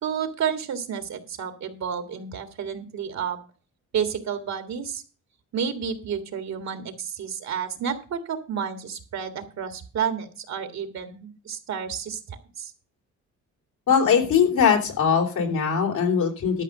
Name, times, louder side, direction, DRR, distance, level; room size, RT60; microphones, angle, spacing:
voice 1, 0.0-3.4 3.9-5.0 5.5-12.7, right 7 dB, 65° right, 8 dB, 1.9 m, -31 dB
voice 2, 13.9-16.6, left 6 dB, 80° left, 1 dB, 3.4 m, -21 dB
12.5 x 5.2 x 6.6 m, 0.36 s
cardioid pair, 90°, 30 cm